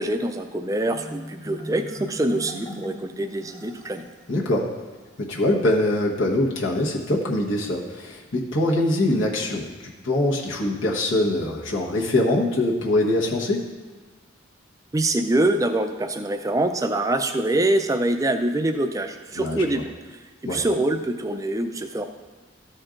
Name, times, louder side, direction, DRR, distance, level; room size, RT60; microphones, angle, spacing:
voice 1, 0.0-4.0 14.9-22.1, right 1 dB, 15° right, 7 dB, 0.4 m, -24 dB
Marimba xylophone, 0.9-4.3, equal, 15° left, 0.8 m, -40 dB
voice 2, 4.3-4.6 5.3-13.6 19.3-19.7 20.4-20.6, left 1 dB, 75° left, -3 dB, 1.2 m, -23 dB
13.0 x 4.4 x 3.8 m, 1.3 s
head